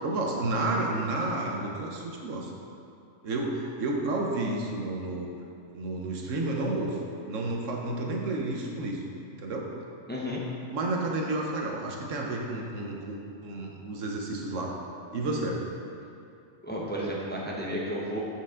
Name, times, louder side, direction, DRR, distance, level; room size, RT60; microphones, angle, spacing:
voice 1, 0.0-2.5 3.2-5.3 5.7-7.0 7.3-9.0 9.4-9.7 10.7-14.8 15.1-15.6, right 2 dB, 80° right, 0 dB, 1.3 m, -31 dB
voice 2, 10.1-10.4 16.6-18.2, equal, 10° left, -4 dB, 0.8 m, -32 dB
7.6 x 6.6 x 3.7 m, 2.6 s
omnidirectional pair, 1.3 m